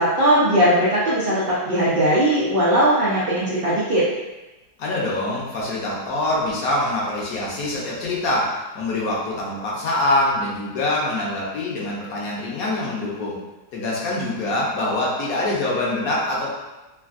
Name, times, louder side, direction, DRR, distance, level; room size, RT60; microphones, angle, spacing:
voice 1, 0.0-4.0, right 1 dB, 85° right, -8 dB, 0.5 m, -19 dB
voice 2, 4.8-13.4 13.7-16.5, left 1 dB, 65° left, -4 dB, 1.1 m, -24 dB
3.3 x 2.3 x 2.4 m, 1.1 s
omnidirectional pair, 1.8 m